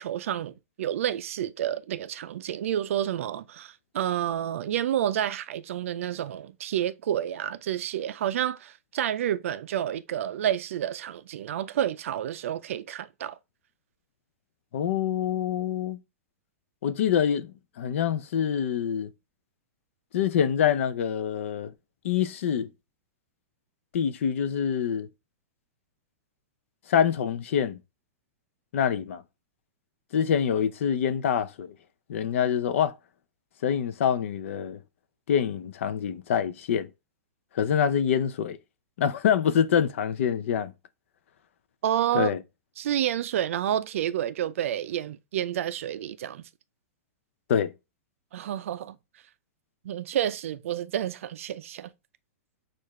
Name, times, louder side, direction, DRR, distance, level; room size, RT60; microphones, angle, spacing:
voice 1, 0.0-13.4 41.8-42.3 42.8-46.4 48.3-49.0 49.8-51.9, right 11 dB, 65° right, 0.4 m, -29 dB
voice 2, 14.7-16.0 16.8-19.1 20.1-21.7 22.0-22.7 23.9-25.1 26.9-27.8 28.7-29.2 30.1-31.7 32.1-32.9 33.6-34.8 35.3-36.9 37.6-38.6 39.0-40.7 42.1-42.4 47.5-47.7, left 8 dB, 60° left, 0.5 m, -25 dB
6.5 x 2.5 x 3.0 m
supercardioid pair, 170°, 8 cm